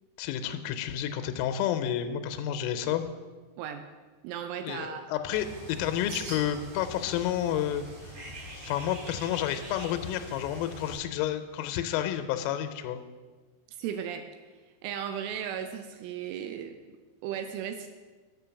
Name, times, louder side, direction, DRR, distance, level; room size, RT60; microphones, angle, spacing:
voice 1, 0.2-3.1 4.6-8.2 8.6-13.0, left 10 dB, 90° left, 8 dB, 3.2 m, -30 dB
voice 2, 4.2-5.1 5.8-5.9 13.7-14.2 14.8-17.9, right 9 dB, 85° right, 7 dB, 3.0 m, -36 dB
Bird, 5.3-11.0, right 1 dB, 55° right, 3.1 m, -43 dB
8.7 x 5.7 x 6.9 m, 1.4 s
omnidirectional pair, 5.7 m